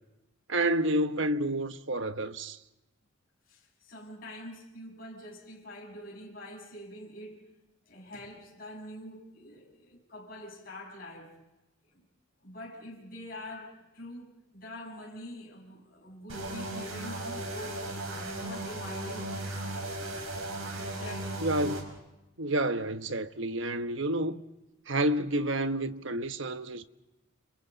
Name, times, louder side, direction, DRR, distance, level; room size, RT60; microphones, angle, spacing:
voice 1, 0.5-2.6 21.4-21.9 22.4-24.4 24.9-26.8, right 1 dB, 65° right, 1.1 m, -29 dB
voice 2, 3.5-7.5 7.8-11.4 11.9-12.0 12.4-19.9 20.7-21.5, left 1 dB, 45° left, 7.3 m, -45 dB
sound 1, 16.3-21.8, right 1 dB, 85° right, 5.9 m, -36 dB
29.5 x 29.5 x 4.0 m
head